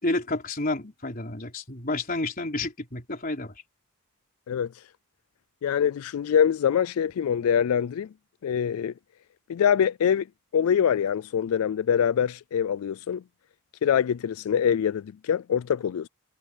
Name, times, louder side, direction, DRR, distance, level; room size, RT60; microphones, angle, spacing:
voice 1, 0.0-3.5, left 2 dB, 40° left, 4.0 m, -30 dB
voice 2, 4.5-4.9 5.6-8.1 8.4-8.9 9.5-10.3 10.5-13.2 13.8-16.1, left 8 dB, 80° left, 0.3 m, -24 dB
head